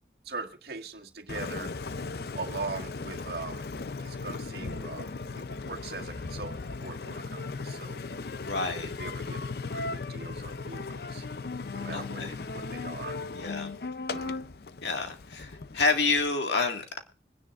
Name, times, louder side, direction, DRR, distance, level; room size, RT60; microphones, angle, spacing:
voice 1, 0.3-1.7 2.3-3.6 4.0-8.0 9.0-9.4 9.7-11.2 11.7-13.2 14.1-14.4, right 3 dB, 65° right, 1.8 m, -41 dB
Engine, 1.3-16.3, left 3 dB, 60° left, 0.6 m, -37 dB
voice 2, 8.4-8.9 11.9-12.3 13.3-13.7 14.8-17.0, left 3 dB, 80° left, 2.0 m, -29 dB
25.0 x 10.0 x 2.5 m
head